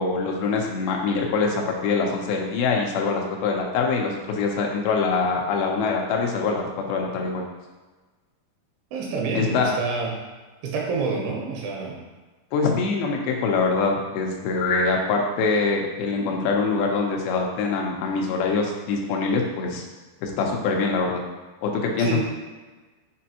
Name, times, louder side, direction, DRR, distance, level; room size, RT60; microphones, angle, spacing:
voice 1, 0.0-7.4 9.4-9.7 12.5-19.8 20.2-21.2 21.6-22.2, left 4 dB, 75° left, 0 dB, 2.5 m, -24 dB
voice 2, 8.9-10.2 10.6-12.0 22.0-22.2, right 4 dB, 80° right, 0 dB, 2.8 m, -28 dB
6.2 x 5.1 x 2.9 m, 1.3 s
omnidirectional pair, 4.7 m